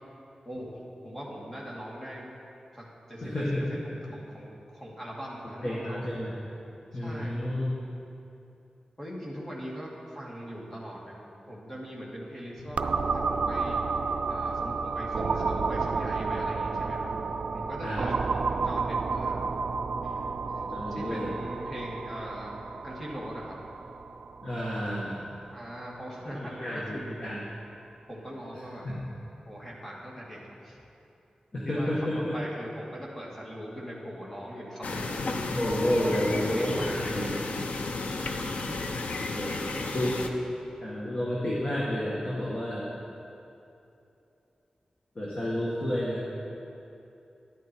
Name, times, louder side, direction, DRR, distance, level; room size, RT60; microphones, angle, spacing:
voice 1, 0.5-2.3 2.7-3.4 3.7-6.1 6.9-7.4 9.0-17.1 17.5-19.5 20.5-22.5 22.8-23.6 25.5-27.0 28.1-28.9 29.5-30.8 31.6-35.3 36.0-37.5, equal, 15° left, -4 dB, 2.4 m, -41 dB
voice 2, 3.2-3.8 5.6-6.4 6.9-7.7 17.8-18.0 20.6-21.4 24.4-25.2 26.6-27.4 28.9-29.0 31.5-32.3 35.5-37.3 39.3-39.6 39.9-40.3 40.8-42.9 45.2-46.2, left 1 dB, 45° left, -7 dB, 1.8 m, -30 dB
sound 1, 12.8-26.3, right 4 dB, 65° right, 0.4 m, -31 dB
sound 2, 34.8-40.3, left 3 dB, 80° left, 0.7 m, -33 dB
12.5 x 11.0 x 4.6 m, 2.8 s
wide cardioid pair, 115°, 2 cm